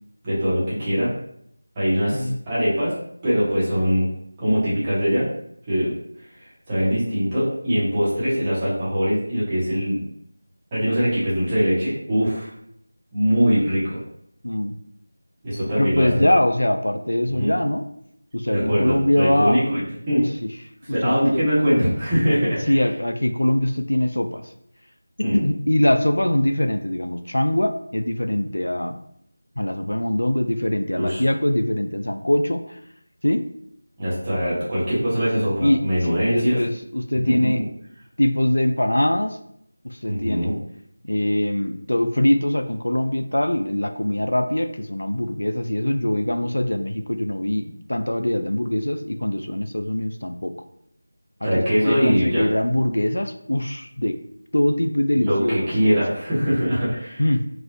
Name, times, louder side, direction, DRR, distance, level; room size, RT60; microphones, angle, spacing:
voice 1, 0.2-1.1 1.7-2.9 3.2-4.1 4.4-5.3 5.7-5.9 6.4-10.0 10.7-12.5 13.1-14.0 15.4-16.3 17.3-17.5 18.5-20.2 20.9-22.7 25.2-25.4 30.9-31.2 34.0-36.6 37.3-37.5 40.1-40.5 51.4-52.4 55.1-57.2, equal, 15° right, -11 dB, 1.0 m, -22 dB
voice 2, 14.4-14.8 15.8-17.8 18.3-19.6 20.4-20.5 20.9-21.8 22.7-24.4 25.3-29.0 29.6-32.8 33.2-33.4 35.2-37.6 38.2-39.4 39.8-40.5 41.0-50.5 51.4-54.2 54.5-55.7 57.2-57.4, left 1 dB, 70° left, 7 dB, 0.3 m, -22 dB
4.0 x 2.4 x 2.6 m, 0.71 s
figure-of-eight pair, 170°, 0 cm